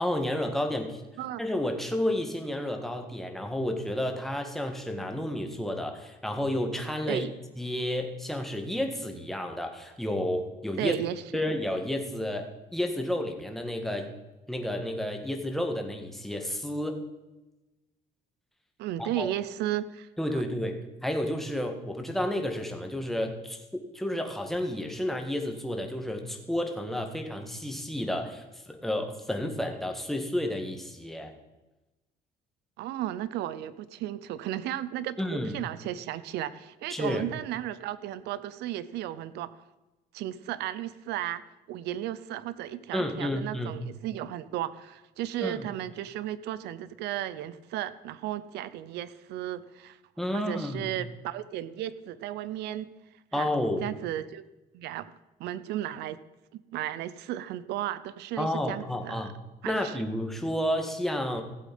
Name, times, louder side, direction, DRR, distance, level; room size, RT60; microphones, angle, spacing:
voice 1, 0.0-1.0 1.4-7.2 7.6-10.9 11.3-14.1 14.5-17.0 19.0-19.3 20.2-31.3 35.2-35.6 36.9-37.2 42.9-43.7 45.4-45.7 50.2-50.9 53.3-53.9 58.4-59.3 59.6-61.4, left 1 dB, ahead, 4 dB, 1.7 m, -31 dB
voice 2, 10.8-11.2 18.8-20.1 32.8-39.5 40.1-41.4 41.7-50.0 50.3-52.9 53.3-53.5 53.8-54.4 54.7-55.1 55.4-56.2 56.5-59.3 59.6-60.0, right 12 dB, 80° right, 16 dB, 0.7 m, -34 dB
15.5 x 7.6 x 5.4 m, 1.1 s
cardioid pair, 110°, 17 cm